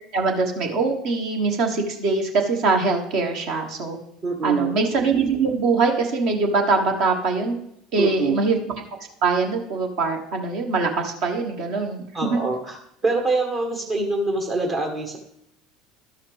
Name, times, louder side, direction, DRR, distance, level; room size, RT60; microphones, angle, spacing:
voice 1, 0.1-4.0 4.4-7.6 7.9-8.6 9.2-12.4, right 4 dB, 60° right, 2 dB, 1.3 m, -23 dB
voice 2, 4.2-4.7 8.0-8.4 12.1-12.8 13.0-15.2, right 3 dB, 40° right, 1 dB, 1.2 m, -24 dB
12.0 x 5.6 x 3.4 m, 0.75 s
figure-of-eight pair, 65°, 0 cm